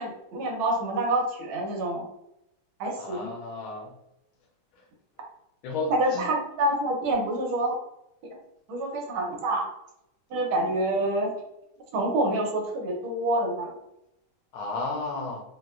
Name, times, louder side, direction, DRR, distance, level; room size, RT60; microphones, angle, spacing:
voice 1, 0.0-2.1 2.8-3.3 5.9-7.8 8.7-9.7 10.3-11.3 11.9-13.7, right 1 dB, 75° right, 0 dB, 1.4 m, -27 dB
voice 2, 3.0-3.9 5.6-6.2 14.5-15.4, left 3 dB, 75° left, 1 dB, 1.3 m, -33 dB
4.0 x 2.2 x 2.2 m, 0.82 s
omnidirectional pair, 2.4 m